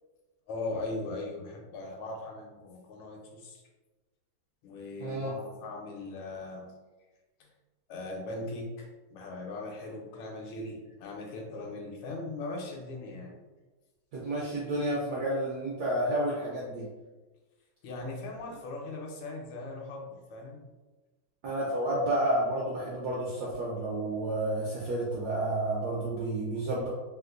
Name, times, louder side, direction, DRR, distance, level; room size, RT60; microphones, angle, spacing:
voice 1, 0.5-3.6 4.6-6.6 7.9-13.4 17.8-20.6, left 2 dB, 80° left, 0 dB, 1.5 m, -39 dB
voice 2, 5.0-5.3 14.1-16.8 21.4-26.9, right 1 dB, 75° right, -5 dB, 0.9 m, -30 dB
3.6 x 2.5 x 2.4 m, 1.2 s
omnidirectional pair, 2.4 m